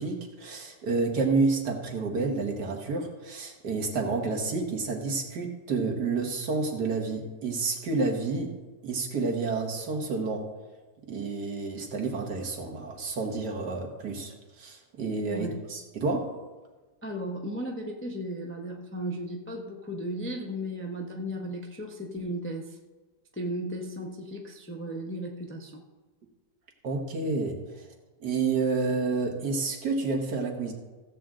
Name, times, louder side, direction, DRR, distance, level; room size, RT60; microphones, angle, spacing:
voice 1, 0.0-8.6 8.8-10.5 11.1-16.3 26.8-27.9 28.2-30.7, right 3 dB, 70° right, 2 dB, 2.0 m, -29 dB
voice 2, 17.0-22.8 23.3-25.8, equal, 10° left, 1 dB, 0.6 m, -35 dB
15.5 x 7.5 x 3.7 m, 1.3 s
omnidirectional pair, 1.8 m